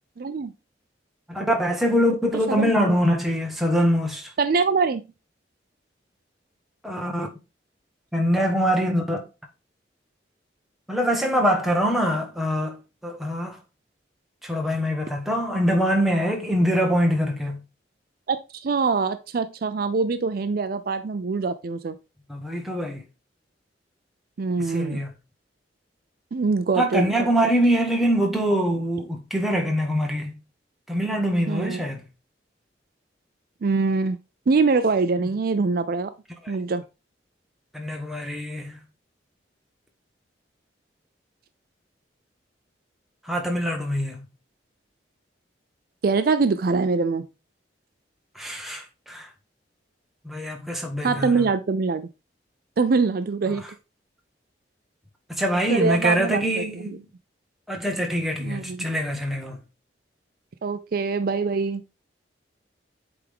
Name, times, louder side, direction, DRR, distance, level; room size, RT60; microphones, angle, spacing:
voice 1, 0.2-0.5 2.5-2.7 4.4-5.0 18.3-21.9 24.4-25.0 26.3-27.3 31.5-31.8 33.6-34.2 34.5-36.1 36.5-36.8 46.0-47.2 51.0-52.1 52.8-53.6 55.7-56.6 58.4-58.9 60.6-61.8, right 4 dB, 55° right, 0.4 m, -23 dB
voice 2, 1.3-4.3 6.8-7.3 8.1-9.2 10.9-12.8 13.0-13.6 14.4-17.6 22.3-23.0 24.6-25.1 26.8-30.3 30.9-32.0 35.2-35.3 37.7-38.8 43.2-44.2 48.3-49.3 50.2-51.5 55.3-57.0 57.7-59.6, equal, ahead, 1.2 m, -24 dB
8.0 x 3.5 x 3.5 m
head